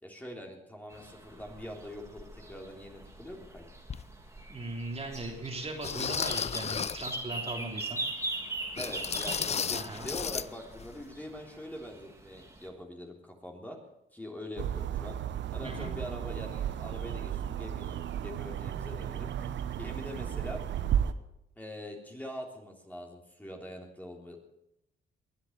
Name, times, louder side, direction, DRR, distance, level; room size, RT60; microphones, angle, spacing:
voice 1, 0.0-3.7 8.8-13.8 14.1-15.2 15.5-19.3 19.8-20.6 21.5-24.4, left 1 dB, 10° left, 1 dB, 3.4 m, -43 dB
sound 1, 0.9-12.7, right 2 dB, 15° right, 2.6 m, -41 dB
sound 2, 3.9-4.0 4.7-4.8 5.8-7.1 8.8-10.5 10.8-10.9 11.4-11.5, left 6 dB, 35° left, 0.6 m, -33 dB
voice 2, 4.5-8.0 9.7-10.1 15.6-15.9, right 2 dB, 30° right, 1 dB, 3.3 m, -38 dB
sound 3, 14.6-21.1, right 10 dB, 70° right, 1.0 m, -34 dB
22.0 x 8.0 x 7.4 m, 0.81 s
cardioid pair, 90°, 20 cm